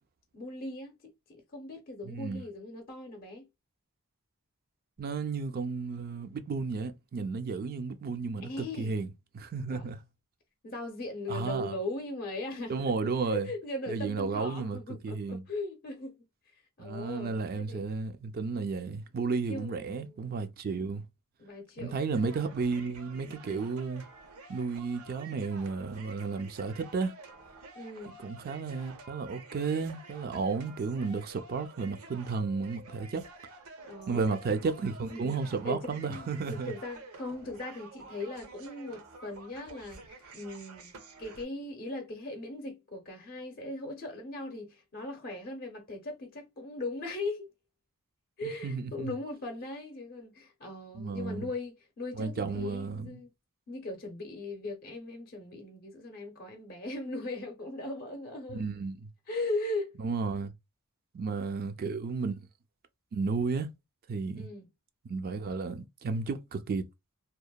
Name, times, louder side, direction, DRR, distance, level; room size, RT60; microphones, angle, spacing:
voice 1, 0.3-3.5 8.4-8.9 9.7-9.9 10.6-16.2 16.5-17.9 19.5-20.5 21.4-22.0 22.4-22.5 27.8-28.2 33.9-34.3 35.1-47.5 48.4-53.3 53.7-58.7 59.3-60.0 64.3-64.7, left 2 dB, 45° left, 0.6 m, -39 dB
voice 2, 2.0-2.4 5.0-10.0 11.3-11.7 12.7-13.5 13.9-15.4 16.8-21.0 21.8-24.0 24.5-27.1 28.2-33.2 34.1-36.7 48.4-49.1 50.9-51.5 52.2-53.2 58.5-59.1 60.0-60.5 61.1-62.5 63.1-63.7 64.1-64.5 65.1-66.9, right 4 dB, 45° right, 0.4 m, -33 dB
sound 1, 22.1-41.4, right 3 dB, 75° right, 0.7 m, -50 dB
2.8 x 2.1 x 2.2 m
head